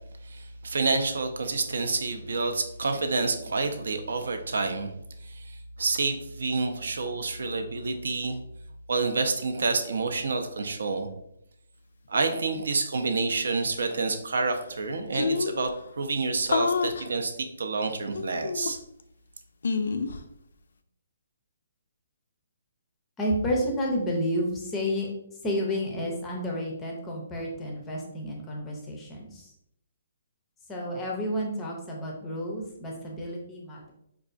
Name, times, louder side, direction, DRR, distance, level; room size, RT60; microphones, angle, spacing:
voice 1, 0.2-4.9 5.2-8.4 8.9-11.1 12.1-18.8, right 3 dB, 75° right, 5 dB, 0.5 m, -28 dB
sound 1, 14.5-14.6 14.7-14.8 15.1-15.7 16.5-17.1 18.1-19.0 19.6-20.2, left 4 dB, 75° left, 0.3 m, -28 dB
voice 2, 23.2-25.1 25.4-29.5 30.7-33.9, equal, 10° left, -1 dB, 0.5 m, -30 dB
4.6 x 2.3 x 2.5 m, 0.77 s
hypercardioid pair, 180°, 0 cm